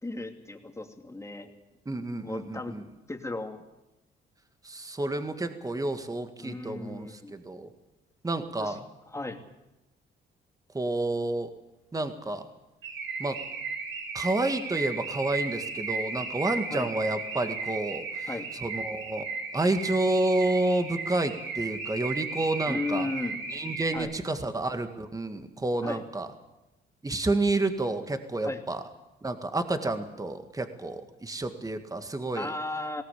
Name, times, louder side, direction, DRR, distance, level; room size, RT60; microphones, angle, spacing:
voice 1, 0.0-1.5 2.2-2.8 3.1-3.6 6.4-7.3 8.6-8.8 9.1-9.4 16.7-16.9 18.3-18.5 22.6-23.4 23.9-24.1 25.8-26.0 28.4-28.6 32.3-33.0, left 2 dB, 15° left, 5 dB, 2.6 m, -35 dB
voice 2, 1.9-2.9 4.6-7.7 8.2-8.8 10.7-11.5 11.9-12.5 13.2-13.4 14.1-18.3 18.6-19.2 19.5-23.1 23.5-26.3 27.0-28.8 29.2-32.5, right 2 dB, 15° right, 8 dB, 1.9 m, -30 dB
Car / Alarm, 12.8-24.0, right 4 dB, 80° right, 5.9 m, -35 dB
20.5 x 17.5 x 8.5 m, 0.99 s
cardioid pair, 90°, 20 cm